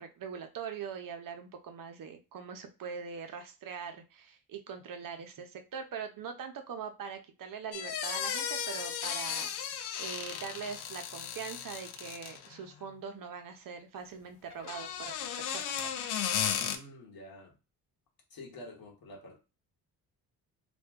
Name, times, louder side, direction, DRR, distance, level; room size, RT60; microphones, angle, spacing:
voice 1, 0.0-15.9, right 6 dB, 55° right, 0.7 m, -42 dB
sound 1, 7.7-12.5 14.5-16.8, left 8 dB, 80° left, 0.6 m, -35 dB
voice 2, 16.5-17.6 18.3-19.4, left 1 dB, 60° left, 1.2 m, -48 dB
2.5 x 2.2 x 3.5 m
cardioid pair, 80°, 39 cm